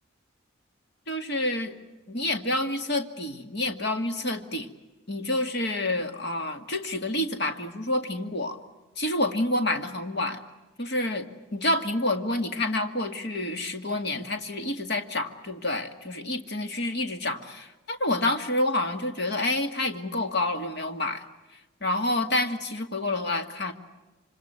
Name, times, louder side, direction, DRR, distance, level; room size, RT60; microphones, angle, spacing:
voice 1, 1.1-1.8 2.1-4.7 5.1-8.6 9.0-10.4 10.8-21.2 21.8-23.7, left 1 dB, 50° left, 6 dB, 2.1 m, -28 dB
26.5 x 26.0 x 8.1 m, 1.1 s
head